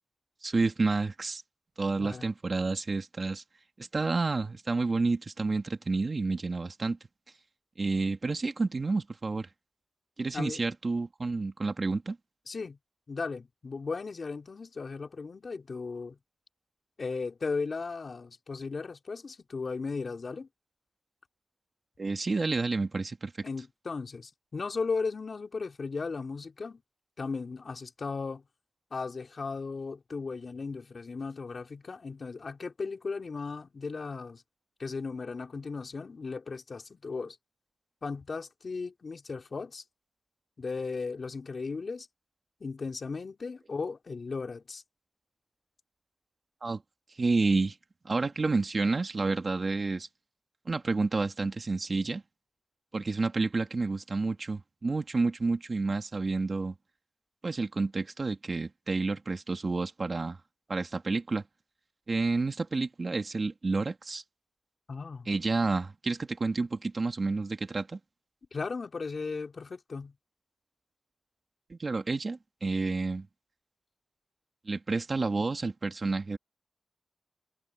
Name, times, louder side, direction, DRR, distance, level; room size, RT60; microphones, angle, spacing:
voice 1, 0.4-1.4 1.8-3.4 3.8-7.0 7.8-9.5 10.2-12.2 22.0-23.3 46.6-46.8 47.2-47.8 48.0-50.1 50.7-52.2 52.9-56.7 57.4-60.4 60.7-61.4 62.1-64.2 65.3-68.0 71.7-73.3 74.7-76.4, right 3 dB, 45° right, 2.5 m, -30 dB
voice 2, 2.0-2.3 10.3-10.6 12.5-12.8 13.1-16.2 17.0-20.5 23.4-26.8 27.2-28.4 28.9-34.4 34.8-37.4 38.0-39.8 40.6-42.1 42.6-44.8 64.9-65.3 68.5-70.1, left 4 dB, 60° left, 3.6 m, -36 dB
wide cardioid pair, 90°, 0 cm